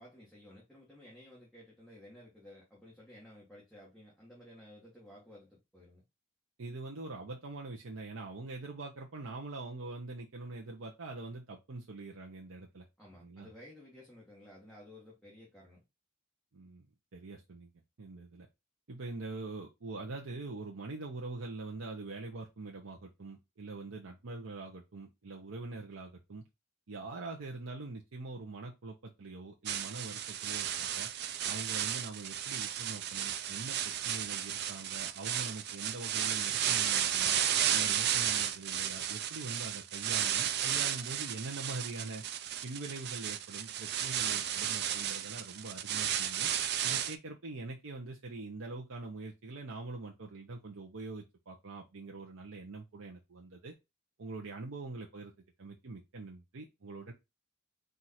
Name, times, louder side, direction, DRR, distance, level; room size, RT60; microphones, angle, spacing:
voice 1, 0.0-6.0 13.0-15.8, left 1 dB, ahead, 1.4 m, -54 dB
voice 2, 6.6-12.8 13.2-13.5 16.5-16.9 17.1-17.7 18.0-18.5 18.9-26.4 26.9-31.1 31.4-37.4 37.7-42.2 42.6-46.5 46.8-53.7 54.2-55.3 55.6-57.1, right 3 dB, 85° right, 0.8 m, -43 dB
sound 1, 29.7-47.2, right 10 dB, 55° right, 0.4 m, -33 dB
4.5 x 2.6 x 4.2 m
head